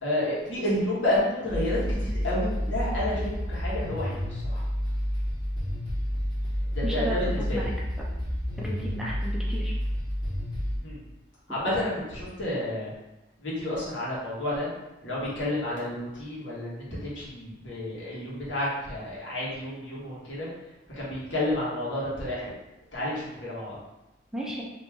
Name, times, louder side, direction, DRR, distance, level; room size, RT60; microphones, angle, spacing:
voice 1, 0.0-4.6 6.7-7.7 10.8-11.0 11.5-12.9 13.4-14.7 15.0-20.5 21.0-22.5 22.9-23.8, left 1 dB, 80° left, -8 dB, 1.5 m, -30 dB
sound 1, 1.5-10.8, equal, 25° left, 1.0 m, -30 dB
voice 2, 6.8-7.2 7.5-7.7 8.6-9.7 24.3-24.6, right 1 dB, 5° right, -4 dB, 0.5 m, -33 dB
3.1 x 2.9 x 3.5 m, 0.97 s
head